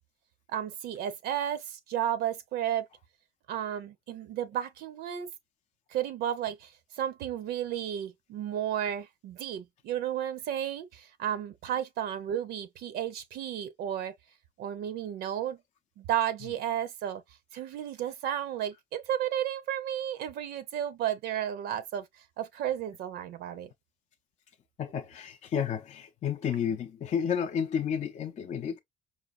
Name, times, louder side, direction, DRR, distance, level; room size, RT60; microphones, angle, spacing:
voice 1, 0.5-2.9 3.5-5.3 5.9-6.7 7.0-14.1 14.6-15.6 16.0-17.2 17.5-22.1 22.4-23.7, right 10 dB, 75° right, 0.6 m, -33 dB
voice 2, 24.8-28.8, left 8 dB, 45° left, 0.5 m, -31 dB
4.8 x 2.4 x 2.4 m
cardioid pair, 110°, 17 cm